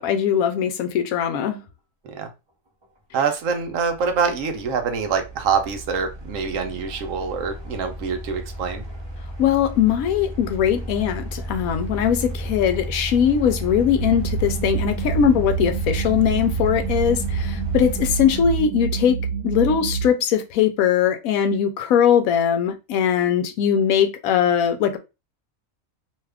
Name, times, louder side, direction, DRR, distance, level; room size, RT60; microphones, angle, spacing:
voice 1, 0.0-1.6 9.4-19.2 19.4-25.0, left 8 dB, 80° left, 1.0 m, -20 dB
sound 1, 2.8-2.9 3.5-18.6, right 1 dB, 40° right, 0.3 m, -32 dB
voice 2, 3.1-8.8, right 6 dB, 70° right, 0.9 m, -25 dB
sound 2, 14.0-20.1, right 7 dB, 90° right, 1.1 m, -27 dB
2.8 x 2.3 x 3.3 m
omnidirectional pair, 1.5 m